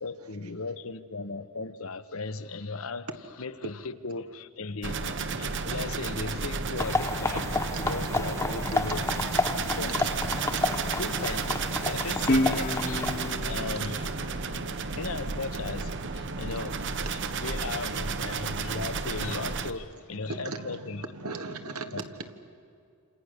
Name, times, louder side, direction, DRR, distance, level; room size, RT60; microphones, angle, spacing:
voice 1, 0.0-3.1 3.4-7.4 7.8-9.2 9.8-10.0 11.0-14.1 14.9-16.8 17.1-21.0 21.9-22.0, left 3 dB, 65° left, 1.0 m, -37 dB
sound 1, 4.8-19.7, right 4 dB, 55° right, 1.0 m, -32 dB
sound 2, 6.8-13.3, left 3 dB, 15° left, 0.7 m, -31 dB
Guitar, 12.3-15.5, left 1 dB, 40° left, 1.5 m, -31 dB
voice 2, 20.3-22.3, right 3 dB, 80° right, 1.7 m, -38 dB
28.0 x 27.5 x 6.6 m
head